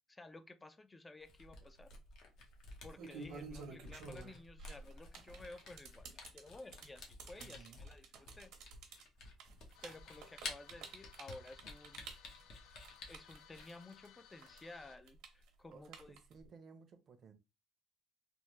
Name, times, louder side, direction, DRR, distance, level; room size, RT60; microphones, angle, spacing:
voice 1, 0.1-1.9 2.8-8.5 9.8-12.1 13.1-16.2, left 2 dB, 15° left, 0.4 m, -54 dB
Camera, 1.2-13.7, left 3 dB, 60° left, 0.9 m, -52 dB
sound 1, 1.6-2.0 2.7-14.1 14.4-16.5, right 4 dB, 70° right, 0.8 m, -51 dB
voice 2, 7.4-7.8 15.7-17.3, right 5 dB, 45° right, 0.6 m, -58 dB
sound 2, 9.7-15.0, left 9 dB, 80° left, 0.4 m, -62 dB
3.4 x 2.0 x 3.1 m
cardioid pair, 120°, 0 cm